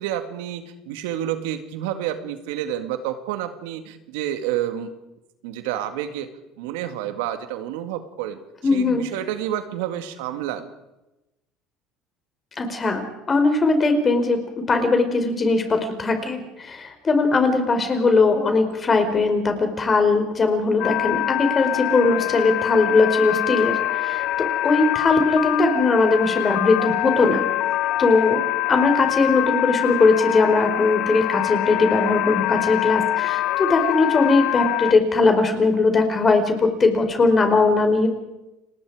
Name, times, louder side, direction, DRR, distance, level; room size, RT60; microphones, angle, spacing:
voice 1, 0.0-4.9 5.4-6.3 6.6-8.4 8.7-10.7, right 11 dB, 85° right, 8 dB, 2.0 m, -29 dB
voice 2, 8.6-9.1 12.6-27.4 28.0-38.1, left 3 dB, 30° left, 6 dB, 4.7 m, -20 dB
sound 1, 20.8-34.9, left 15 dB, 65° left, 0.7 m, -24 dB
30.0 x 20.0 x 5.0 m, 0.95 s
supercardioid pair, 100°, 0 cm